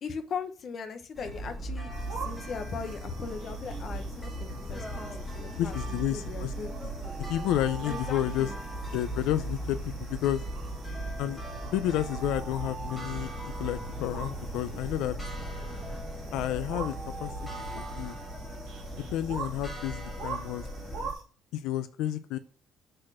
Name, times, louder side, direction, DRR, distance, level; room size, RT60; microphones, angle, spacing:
voice 1, 0.0-6.7 7.9-8.5, left 5 dB, 40° left, 8 dB, 0.9 m, -39 dB
sound 1, 1.2-21.1, right 1 dB, 10° left, 1.7 m, -38 dB
sound 2, 1.9-21.2, right 5 dB, 60° right, 2.6 m, -46 dB
voice 2, 5.6-6.5 6.8-6.9 7.3-8.5 8.9-10.4 11.2-11.4 11.7-13.3 13.6-15.2 16.3-17.3 17.7-18.2 19.1-20.7 21.5-22.4, left 12 dB, 85° left, 12 dB, 0.5 m, -31 dB
sound 3, 6.6-9.8 10.9-14.7 15.8-19.0, right 3 dB, 10° right, 0.6 m, -46 dB
6.6 x 4.3 x 6.2 m, 0.39 s
cardioid pair, 155°, 0 cm